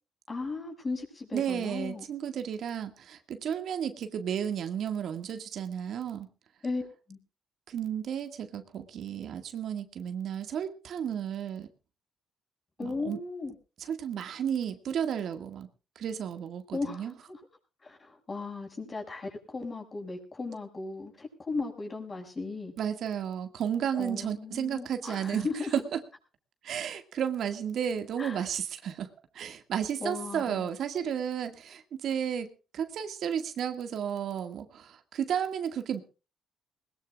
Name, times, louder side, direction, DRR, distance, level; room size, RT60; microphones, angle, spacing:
voice 1, 0.3-2.0 6.6-7.2 12.8-13.6 16.7-17.4 17.8-22.7 23.9-25.7 28.2-28.5 30.0-30.7, left 3 dB, 30° left, 4 dB, 6.5 m, -36 dB
voice 2, 1.3-6.3 7.7-11.7 12.8-13.2 13.8-15.7 16.0-17.1 22.8-26.0 26.6-29.1 29.3-36.0, right 8 dB, 70° right, 8 dB, 2.0 m, -33 dB
20.5 x 20.5 x 2.4 m, 0.34 s
cardioid pair, 90°, 0 cm